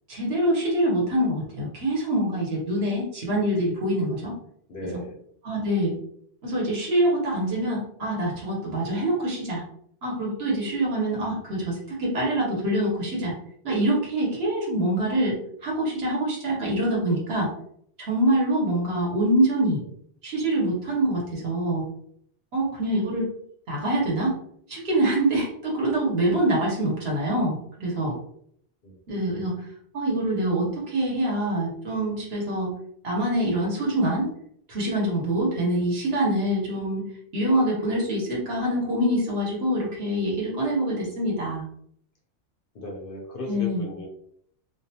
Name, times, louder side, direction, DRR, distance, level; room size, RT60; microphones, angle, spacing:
voice 1, 0.1-4.4 5.4-5.9 6.4-9.6 10.0-13.3 13.6-17.5 18.0-19.8 20.2-21.8 22.5-23.3 23.7-24.4 24.7-28.1 29.1-29.6 29.9-32.7 33.0-34.3 34.7-37.1 37.3-41.7 43.5-43.9, right 1 dB, 60° right, -3 dB, 1.1 m, -25 dB
voice 2, 4.7-5.2 28.8-29.0 42.7-44.1, left 2 dB, 60° left, -1 dB, 0.6 m, -36 dB
2.5 x 2.2 x 2.8 m, 0.67 s
omnidirectional pair, 1.2 m